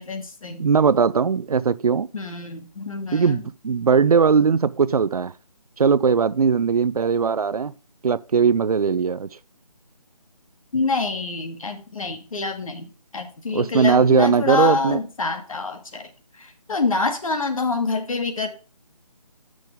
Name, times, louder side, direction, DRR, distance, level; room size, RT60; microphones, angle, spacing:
voice 1, 0.0-0.6 2.1-3.3 10.7-16.1 16.4-18.5, left 3 dB, 55° left, 1.5 m, -26 dB
voice 2, 0.6-2.1 3.1-5.3 5.8-7.7 8.0-9.3 13.5-15.0, right 6 dB, 65° right, 0.4 m, -19 dB
7.4 x 6.2 x 3.5 m
figure-of-eight pair, 160°, 21 cm